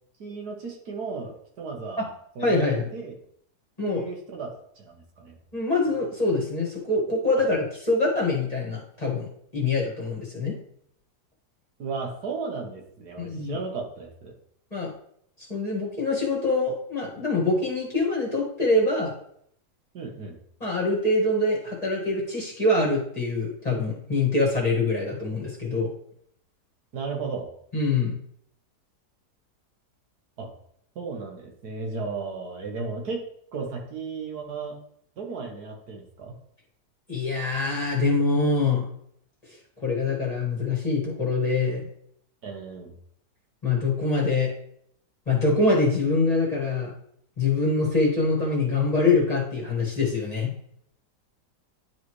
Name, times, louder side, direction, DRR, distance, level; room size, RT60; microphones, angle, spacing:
voice 1, 0.2-2.0 2.4-3.1 3.9-5.3 11.8-14.3 19.9-20.4 26.9-27.5 30.4-30.5 30.9-33.2 33.5-34.8 35.2-36.3 42.4-42.9, right 4 dB, 65° right, 1 dB, 1.6 m, -35 dB
voice 2, 2.4-2.9 3.8-4.0 5.5-10.6 13.2-13.6 14.7-14.9 15.5-19.1 20.6-25.9 27.7-28.1 37.1-38.8 39.8-41.9 43.6-44.5 45.3-46.9 47.4-50.5, left 3 dB, 25° left, -4 dB, 1.8 m, -24 dB
10.5 x 4.0 x 3.1 m, 0.67 s
omnidirectional pair, 1.8 m